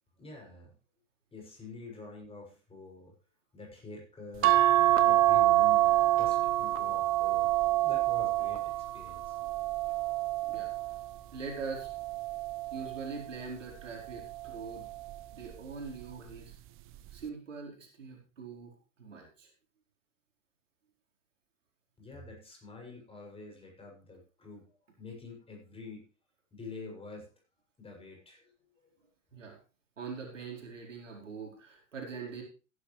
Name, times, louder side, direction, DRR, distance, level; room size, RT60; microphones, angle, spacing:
voice 1, 0.2-0.7 1.3-3.1 3.5-5.9 6.2-7.5 7.8-9.4 22.0-24.6 25.0-26.1 26.5-27.3 27.8-28.5, left 3 dB, 15° left, 0 dB, 7.0 m, -47 dB
sound 1, 4.4-11.0 11.7-13.1 14.3-14.8 15.1-15.2, right 15 dB, 35° right, 1.0 m, -26 dB
voice 2, 10.4-10.7 11.3-11.9 12.7-14.9 15.3-16.5 17.1-19.5 29.3-29.6 30.0-32.4, right 4 dB, 80° right, 0 dB, 4.5 m, -43 dB
16.5 x 11.5 x 3.3 m, 0.34 s
figure-of-eight pair, 95°, 37 cm